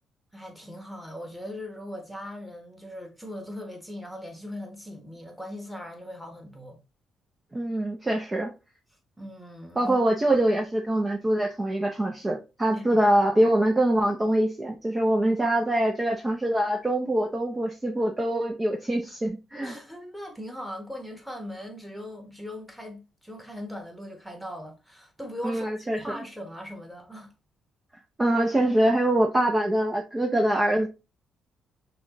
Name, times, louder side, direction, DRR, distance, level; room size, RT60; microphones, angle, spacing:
voice 1, 0.3-6.8 9.2-10.0 12.7-12.8 19.6-27.3, left 1 dB, ahead, 1.3 m, -39 dB
voice 2, 7.5-8.5 9.8-19.7 25.4-26.0 28.2-30.9, right 1 dB, 20° right, 0.6 m, -24 dB
6.1 x 2.3 x 3.0 m
cardioid pair, 90°, 0 cm